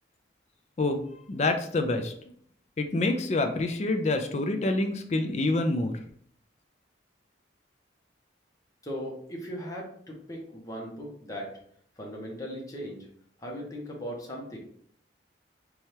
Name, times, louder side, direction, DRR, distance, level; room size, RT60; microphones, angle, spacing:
voice 1, 1.3-2.1 2.8-5.9, left 2 dB, 35° left, 6 dB, 0.4 m, -27 dB
voice 2, 8.8-11.5 12.0-13.1 13.4-14.6, equal, 20° left, -2 dB, 0.8 m, -38 dB
4.2 x 2.3 x 3.2 m, 0.63 s
head